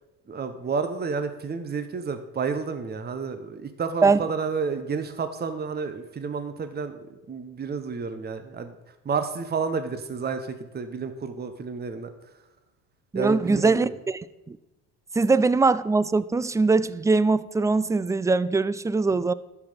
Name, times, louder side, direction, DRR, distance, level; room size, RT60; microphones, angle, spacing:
voice 1, 0.3-12.4 13.1-14.0, right 5 dB, 25° right, 1.1 m, -31 dB
voice 2, 13.1-13.9 14.5-14.6 15.2-19.3, right 3 dB, 10° right, 0.3 m, -21 dB
11.5 x 6.0 x 6.7 m
hypercardioid pair, 75°, 38 cm